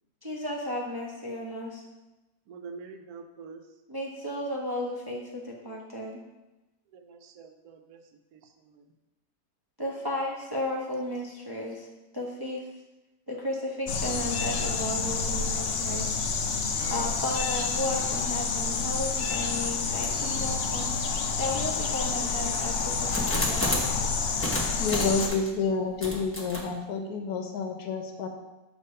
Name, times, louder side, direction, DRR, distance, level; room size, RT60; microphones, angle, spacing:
voice 1, 0.2-1.8 3.9-6.2 9.8-11.9 12.1-12.7 13.3-16.1 16.9-20.9 21.4-23.9, left 1 dB, 35° right, -3 dB, 0.4 m, -34 dB
voice 2, 2.5-3.8 6.9-8.9, right 5 dB, 75° right, 6 dB, 1.1 m, -46 dB
sound 1, 13.9-25.3, left 5 dB, 65° left, 0.6 m, -29 dB
sound 2, 20.0-20.3 20.9-21.0 21.7-24.0 24.4-25.5 26.0-26.6, equal, 10° left, 0.7 m, -32 dB
voice 3, 24.8-28.3, left 4 dB, 80° left, 4 dB, 1.1 m, -29 dB
6.6 x 3.0 x 5.5 m, 1.0 s
omnidirectional pair, 1.6 m